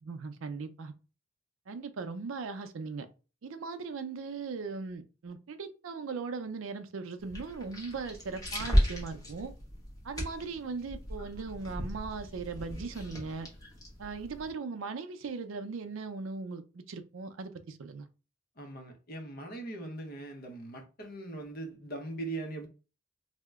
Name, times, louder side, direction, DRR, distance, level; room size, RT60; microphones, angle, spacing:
voice 1, 0.0-0.9 1.7-3.1 3.4-9.5 10.0-13.5 14.0-18.1, right 4 dB, 80° right, 0.5 m, -39 dB
sound 1, 7.2-14.5, equal, 20° left, 0.9 m, -34 dB
voice 2, 18.6-22.7, right 2 dB, 45° left, 0.7 m, -40 dB
2.8 x 2.1 x 3.4 m
head